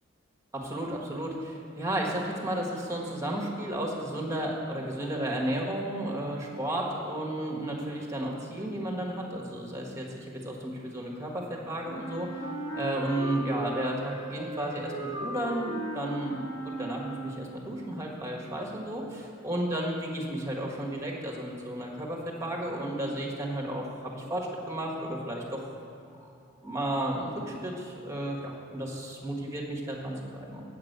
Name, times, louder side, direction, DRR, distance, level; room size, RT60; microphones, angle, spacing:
voice 1, 0.5-12.3 12.7-25.6 26.6-30.6, right 1 dB, 15° right, -1 dB, 1.5 m, -33 dB
Wind instrument woodwind instrument, 11.8-17.6, right 1 dB, 85° left, 2.0 m, -37 dB
8.4 x 6.0 x 8.0 m, 2.8 s
head